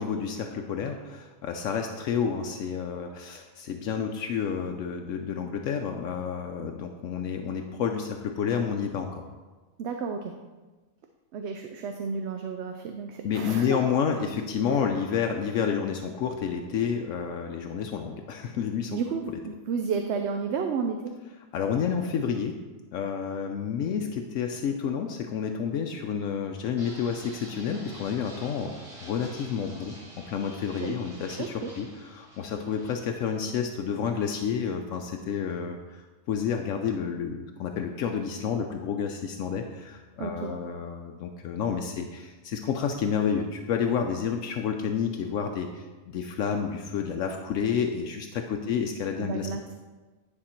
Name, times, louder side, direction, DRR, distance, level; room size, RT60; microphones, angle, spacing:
voice 1, 0.0-9.3 13.2-19.0 21.5-22.6 22.9-30.0 30.3-49.5, left 7 dB, 80° left, 4 dB, 0.9 m, -30 dB
voice 2, 9.8-10.3 11.3-13.8 14.7-14.9 18.9-21.1 30.8-30.9 31.4-31.7 40.2-40.5 48.6-48.7 49.2-49.6, right 5 dB, 65° right, 5 dB, 0.8 m, -32 dB
Fixed-wing aircraft airplane, 26.8-34.7, right 1 dB, 25° right, 1.2 m, -49 dB
9.9 x 4.5 x 4.3 m, 1.3 s
omnidirectional pair, 1.4 m